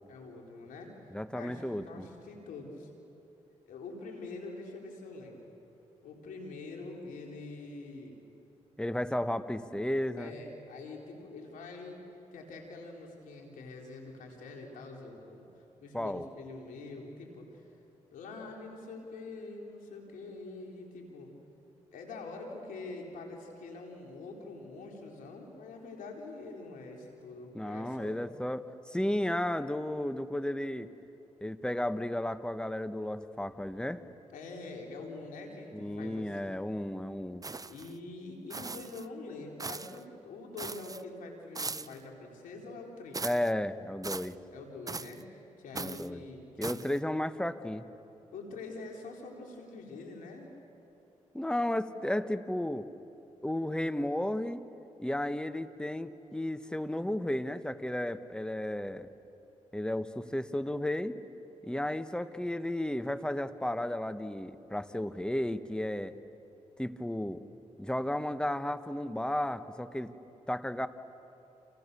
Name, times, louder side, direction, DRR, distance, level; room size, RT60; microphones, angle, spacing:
voice 1, 0.1-0.9 1.3-2.9 3.7-5.5 6.0-8.2 10.2-12.0 12.3-15.5 15.8-17.7 18.1-21.3 21.9-28.2 34.3-36.4 37.7-43.5 44.5-46.8 48.3-50.5, left 3 dB, 90° left, 1 dB, 4.1 m, -45 dB
voice 2, 1.1-2.1 8.8-10.3 15.9-16.2 27.5-30.9 31.4-34.0 35.7-37.5 43.2-44.4 45.7-46.2 46.6-47.9 51.3-52.9 53.4-54.6 55.0-59.1 59.7-61.2 61.6-66.1 66.8-67.4 67.8-70.1 70.5-70.9, left 1 dB, 5° left, 11 dB, 1.4 m, -33 dB
sound 1, 37.4-37.9 38.5-39.1 39.6-40.0 40.6-41.0 41.5-42.0 43.1-43.5 44.0-44.3 44.9-45.2 45.7-46.1 46.6-47.0, right 3 dB, 25° right, 0.8 m, -39 dB
29.0 x 28.5 x 7.0 m, 2.9 s
supercardioid pair, 55°, 14 cm